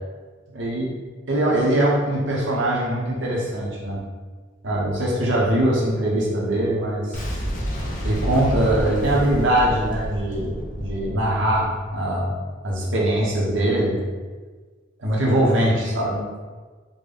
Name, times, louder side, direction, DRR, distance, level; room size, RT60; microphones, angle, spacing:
voice 1, 0.5-0.9 1.3-4.0 4.6-7.2 8.0-12.3 12.6-14.0 15.0-16.2, right 1 dB, 80° right, -4 dB, 0.8 m, -22 dB
Boom, 7.1-12.1, equal, 40° left, 0.6 m, -29 dB
3.8 x 2.1 x 3.4 m, 1.4 s
head